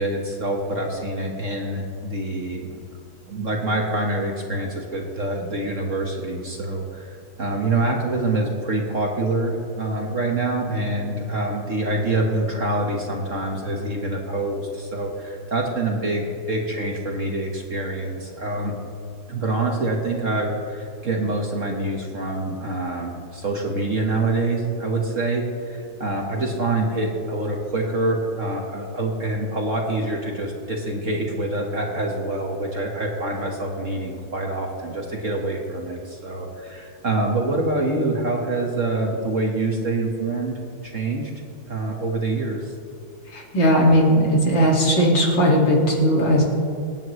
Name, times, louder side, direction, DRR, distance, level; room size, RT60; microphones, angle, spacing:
voice 1, 0.0-2.8 3.3-18.7 19.3-40.5 40.8-42.7, right 2 dB, 40° right, 0 dB, 1.5 m, -26 dB
voice 2, 43.3-46.4, equal, 60° left, -2 dB, 2.9 m, -17 dB
26.0 x 9.3 x 3.2 m, 2.5 s
omnidirectional pair, 2.3 m